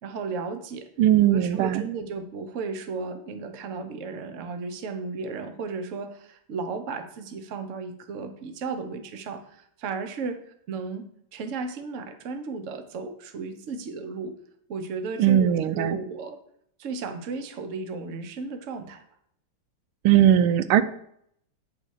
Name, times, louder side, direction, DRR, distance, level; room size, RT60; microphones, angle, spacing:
voice 1, 0.0-0.9 1.3-10.4 10.7-14.3 14.7-16.4 16.8-19.0, right 4 dB, 50° right, 7 dB, 1.0 m, -34 dB
voice 2, 1.0-1.8 15.2-16.0 20.0-20.8, right 11 dB, 90° right, 13 dB, 1.5 m, -19 dB
10.0 x 4.1 x 6.4 m, 0.70 s
omnidirectional pair, 2.3 m